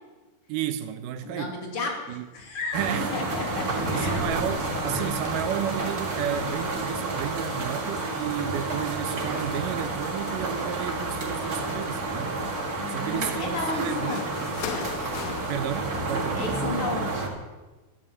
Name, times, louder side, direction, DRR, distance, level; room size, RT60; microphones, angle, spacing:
voice 1, 0.5-1.6 2.1-2.3 2.7-3.1 3.7-12.5 12.9-14.3 15.5-16.6, right 11 dB, 75° right, 2.2 m, -32 dB
voice 2, 1.2-4.2 12.8-14.2 16.3-17.2, left 3 dB, 40° left, 3.1 m, -33 dB
sound 1, 2.6-3.1 3.3-8.8 9.4-10.3 10.6-12.1 12.4-16.5, left 7 dB, 80° left, 2.5 m, -43 dB
sound 2, 2.7-17.3, right 2 dB, 30° right, 1.9 m, -30 dB
13.0 x 10.5 x 7.0 m
omnidirectional pair, 4.1 m